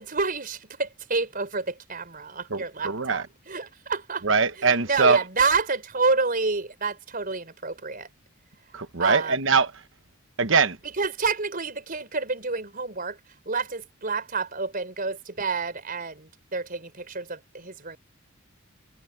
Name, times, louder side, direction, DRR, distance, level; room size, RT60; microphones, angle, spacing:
voice 1, 0.0-4.3 4.6-8.1 9.0-9.4 10.8-13.2 13.4-18.0, right 4 dB, 45° right, 4.9 m, -29 dB
voice 2, 2.5-3.2 4.2-5.2 8.7-9.7 10.4-10.8, right 4 dB, 65° right, 1.2 m, -22 dB
head